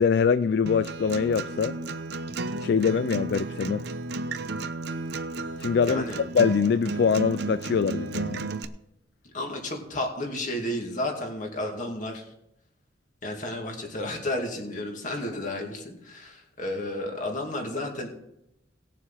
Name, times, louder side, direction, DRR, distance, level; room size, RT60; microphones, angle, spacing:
voice 1, 0.0-1.8 2.6-3.8 5.6-6.0 6.3-8.5, left 6 dB, 60° left, 14 dB, 0.3 m, -23 dB
Acoustic guitar, 0.7-8.6, right 3 dB, 60° right, 0.7 m, -33 dB
voice 2, 5.8-6.2 9.3-12.3 13.2-18.1, left 1 dB, 40° left, 1 dB, 2.3 m, -32 dB
18.5 x 7.2 x 4.1 m, 0.80 s
head